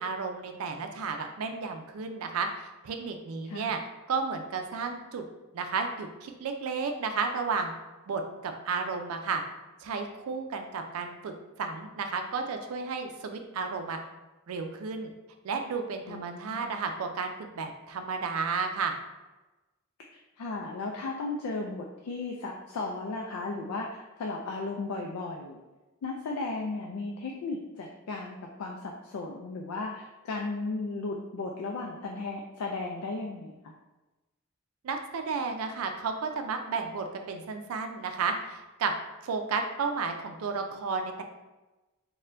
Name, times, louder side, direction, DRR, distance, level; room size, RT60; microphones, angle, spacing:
voice 1, 0.0-2.5 2.8-3.8 4.1-5.3 5.5-7.7 8.1-9.4 9.8-14.0 14.5-15.1 15.4-18.9 34.8-38.9 39.2-41.2, right 5 dB, 80° right, 5 dB, 0.4 m, -32 dB
voice 2, 3.4-3.7 16.1-16.7 20.4-25.6 26.0-33.7, left 3 dB, 80° left, 0 dB, 0.4 m, -35 dB
4.1 x 2.2 x 2.5 m, 1.1 s
head